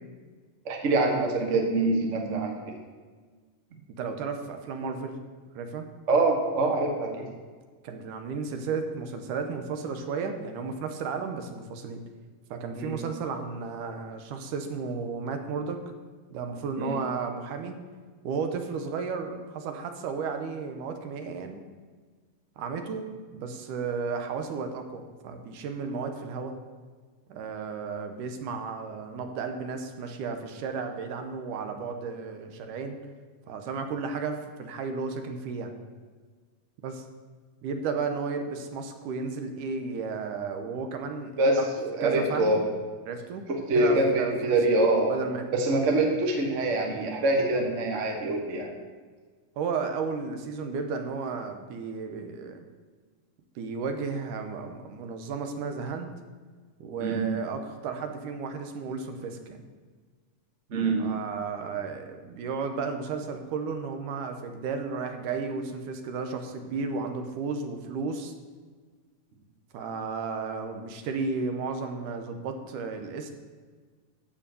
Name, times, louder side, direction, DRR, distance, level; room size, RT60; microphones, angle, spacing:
voice 1, 0.6-2.5 6.1-7.3 12.8-13.0 16.8-16.9 41.4-41.6 41.9-42.6 43.7-45.2 45.5-48.7 57.0-57.2 60.7-61.1, right 2 dB, 45° right, 2 dB, 0.9 m, -24 dB
voice 2, 4.0-5.2 5.6-5.9 7.8-12.0 12.5-15.8 16.3-17.7 18.2-21.6 22.6-26.5 27.3-33.0 33.5-35.8 36.8-37.0 37.6-41.6 42.0-42.6 43.1-43.4 43.8-44.6 45.1-45.5 49.6-52.7 53.6-56.1 56.8-59.6 61.0-68.3 69.7-73.3, right 5 dB, 80° right, 6 dB, 2.4 m, -33 dB
14.0 x 5.2 x 6.8 m, 1.5 s
omnidirectional pair, 3.7 m